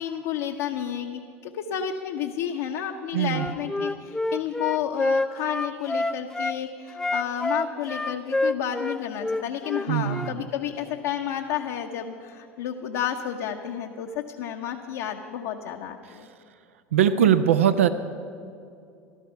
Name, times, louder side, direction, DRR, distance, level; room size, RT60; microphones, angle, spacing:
voice 1, 0.0-16.3, left 9 dB, 70° left, 1 dB, 0.8 m, -31 dB
voice 2, 3.1-3.5 9.9-10.4 16.1-16.3 16.9-17.9, right 9 dB, 85° right, 12 dB, 0.6 m, -21 dB
Wind instrument woodwind instrument, 3.3-6.6 6.9-10.3, left 2 dB, 10° left, 0.5 m, -27 dB
14.5 x 12.5 x 5.7 m, 2.4 s
hypercardioid pair, 80°, 7 cm